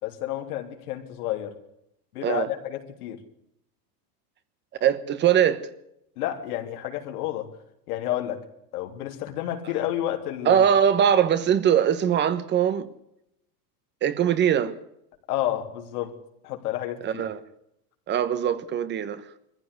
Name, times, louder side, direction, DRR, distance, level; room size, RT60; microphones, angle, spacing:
voice 1, 0.0-1.5 2.1-3.2 6.2-7.5 7.9-8.4 8.7-10.6 15.3-16.1 16.4-17.2, left 12 dB, 75° left, 3.3 m, -30 dB
voice 2, 4.8-5.7 10.4-12.9 14.0-14.7 17.0-17.4 18.1-19.2, right 9 dB, 25° right, 1.1 m, -21 dB
22.5 x 15.0 x 8.1 m
supercardioid pair, 160°, 45 cm